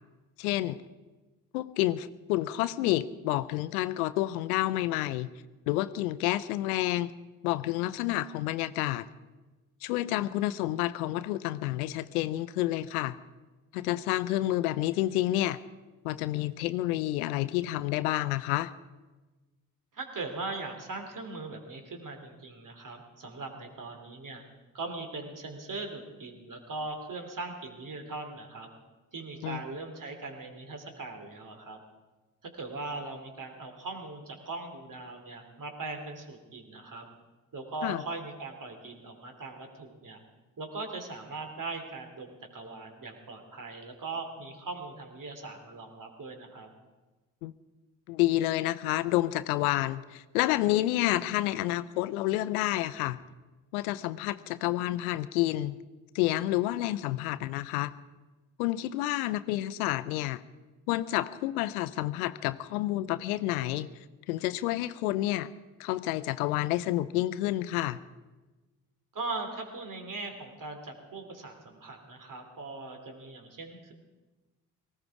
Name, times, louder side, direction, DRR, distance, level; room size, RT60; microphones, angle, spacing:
voice 1, 0.4-0.8 1.5-5.3 5.7-7.1 7.4-9.1 9.8-13.2 13.7-15.6 16.0-18.7 29.4-29.6 37.8-38.0 47.4-47.5 48.1-53.2 53.7-55.8 56.1-57.9 58.6-60.4 60.9-63.9 64.3-65.5 65.8-68.0, left 15 dB, 80° left, 15 dB, 0.6 m, -29 dB
voice 2, 19.9-24.4 24.7-28.7 29.1-31.8 32.4-37.1 37.5-40.2 40.6-46.7 69.1-73.9, right 3 dB, 45° right, 5 dB, 3.2 m, -40 dB
19.0 x 15.5 x 4.8 m, 1.2 s
hypercardioid pair, 50°, 43 cm